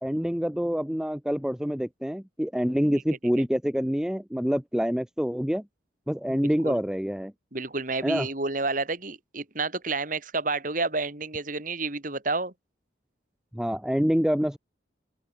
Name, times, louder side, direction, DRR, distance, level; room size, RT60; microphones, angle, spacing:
voice 1, 0.0-5.6 6.1-7.3 8.0-8.3 13.5-14.6, equal, 5° right, 0.5 m, -26 dB
voice 2, 6.3-6.8 7.5-12.5, right 3 dB, 45° right, 2.7 m, -30 dB
open air
head